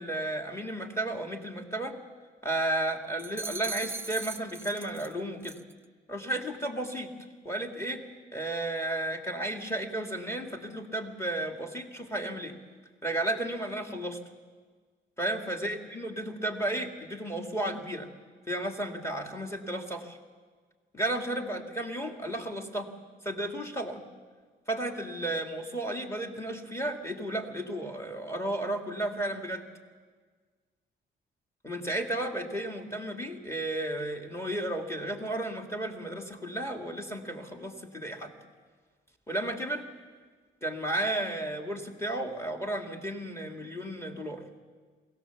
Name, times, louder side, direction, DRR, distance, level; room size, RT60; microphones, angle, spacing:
voice 1, 0.0-2.0 2.4-5.6 6.1-7.1 7.4-8.0 8.3-12.6 13.0-14.2 15.2-18.1 18.5-20.2 20.9-22.9 23.2-24.0 24.7-29.7 31.6-38.3 39.3-39.9 40.6-44.4, right 1 dB, 15° left, 3 dB, 2.3 m, -33 dB
sound 1, 3.2-5.1 5.4-5.7, right 3 dB, 10° right, 0.7 m, -39 dB
22.5 x 17.0 x 7.2 m, 1.5 s
cardioid pair, 90°, 20 cm